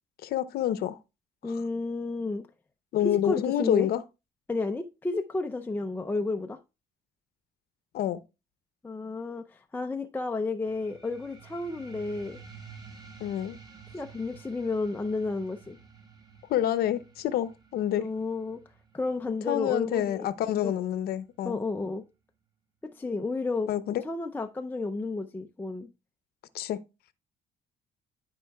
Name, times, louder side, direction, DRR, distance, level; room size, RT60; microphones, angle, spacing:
voice 1, 0.2-1.0 1.4-1.5 2.9-4.0 7.9-8.2 13.2-13.6 16.5-18.1 19.5-21.6 23.7-24.0 26.5-26.8, left 11 dB, 65° left, 0.8 m, -28 dB
voice 2, 1.4-2.4 3.0-3.9 4.5-6.6 8.8-12.4 13.9-15.8 18.0-18.6 18.9-20.3 20.6-20.7 21.4-22.0 22.8-23.7 24.0-25.9, left 3 dB, 10° left, 0.5 m, -32 dB
sound 1, 10.7-21.7, right 5 dB, 25° right, 2.1 m, -52 dB
12.5 x 5.3 x 2.3 m
cardioid pair, 110°, 17 cm